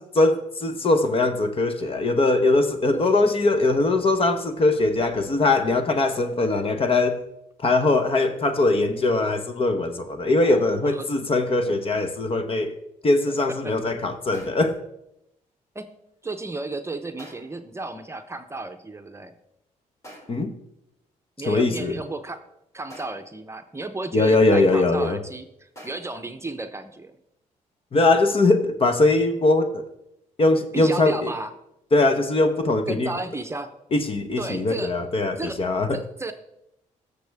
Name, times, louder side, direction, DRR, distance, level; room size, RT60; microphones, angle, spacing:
voice 1, 0.0-7.2 7.6-12.8 13.0-14.8 20.3-20.5 21.5-22.0 24.1-25.2 27.9-29.8 30.4-31.3 31.9-33.1 33.9-35.9, left 2 dB, 40° left, 9 dB, 1.1 m, -21 dB
voice 2, 10.2-11.1 11.6-11.8 13.3-13.4 13.6-13.7 15.7-15.9 16.2-19.3 21.4-22.4 22.7-27.2 30.7-31.5 32.9-33.7 34.4-34.9 35.4-35.6 35.9-36.3, right 2 dB, 20° right, 8 dB, 0.8 m, -34 dB
sound 1, 14.3-14.8 17.2-17.7 20.0-20.6 22.9-23.5 25.7-26.3, equal, 20° left, 3.1 m, -46 dB
16.0 x 6.7 x 3.5 m, 0.83 s
cardioid pair, 75°, 14 cm